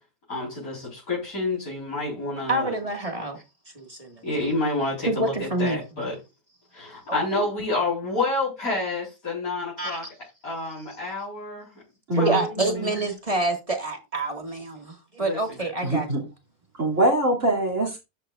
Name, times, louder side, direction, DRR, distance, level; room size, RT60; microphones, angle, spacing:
voice 1, 0.3-2.7 4.2-6.1 6.7-10.0 10.4-11.7 12.1-12.8 15.2-15.6, left 2 dB, 60° left, 4.8 m, -29 dB
voice 2, 2.5-3.4 3.8-4.2 5.1-5.8 7.1-7.5 9.8-10.0 12.1-16.1, right 2 dB, 20° right, 2.0 m, -27 dB
voice 3, 12.1-12.4 12.7-12.9 15.8-16.2 16.8-18.0, right 1 dB, 50° right, 3.1 m, -23 dB
13.0 x 8.2 x 2.5 m
omnidirectional pair, 1.6 m